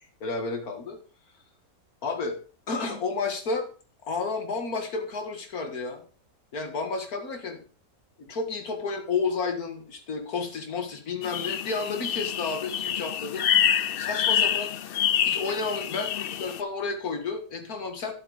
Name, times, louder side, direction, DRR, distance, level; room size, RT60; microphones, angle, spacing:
voice 1, 0.2-1.0 2.0-2.4 2.7-3.7 4.1-6.0 6.5-7.6 8.2-13.4 14.0-14.7 15.2-18.1, left 4 dB, 90° left, 6 dB, 2.2 m, -31 dB
sound 1, 11.2-16.6, left 9 dB, 60° left, 0.6 m, -27 dB
10.0 x 8.2 x 4.9 m, 0.39 s
omnidirectional pair, 1.5 m